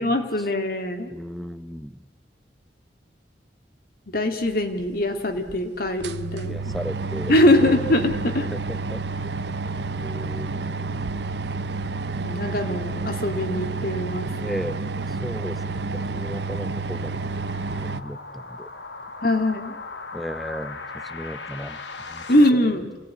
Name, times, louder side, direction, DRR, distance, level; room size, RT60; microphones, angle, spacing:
voice 1, 0.0-1.1 4.1-6.7 7.3-8.5 12.2-14.3 19.2-19.8 22.3-23.0, left 1 dB, 55° left, 6 dB, 2.4 m, -22 dB
voice 2, 1.1-2.0 6.4-7.9 8.5-9.0 10.0-11.1 14.3-17.2 17.8-18.7 20.1-21.8 22.1-22.2, equal, ahead, 12 dB, 0.8 m, -35 dB
sound 1, 4.8-4.9 5.5-5.6 5.9-18.0, right 3 dB, 75° right, 0.8 m, -30 dB
sound 2, 14.5-22.5, left 3 dB, 90° left, 1.7 m, -40 dB
28.0 x 17.5 x 9.6 m, 1.3 s
head